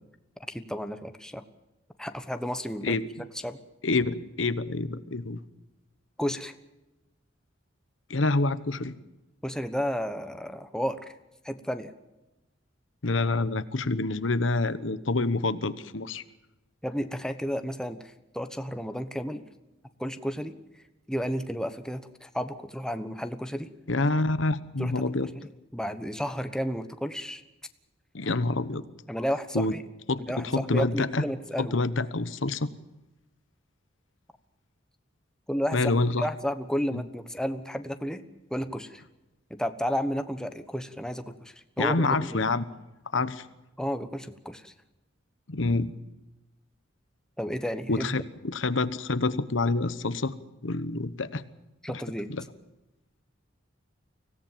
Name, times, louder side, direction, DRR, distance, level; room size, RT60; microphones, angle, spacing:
voice 1, 0.5-1.4 2.0-3.0 3.4-3.6 6.2-6.5 9.4-11.1 11.4-11.9 16.8-19.4 20.0-20.6 21.1-23.7 24.8-27.4 29.1-29.8 30.3-31.7 35.5-35.9 36.2-38.2 38.5-39.0 39.5-42.4 43.8-44.7 47.4-48.1 51.8-52.3, equal, 5° left, 8 dB, 1.1 m, -32 dB
voice 2, 3.8-5.4 8.1-8.9 13.0-16.2 23.9-25.3 28.1-28.8 29.5-29.7 30.1-31.2 31.6-32.7 35.7-36.3 36.9-37.0 41.8-42.7 43.1-43.5 45.5-45.9 47.9-50.3 50.6-51.4 51.9-52.0 52.3-52.4, left 3 dB, 85° left, 13 dB, 1.1 m, -27 dB
25.0 x 17.0 x 7.4 m, 0.99 s
head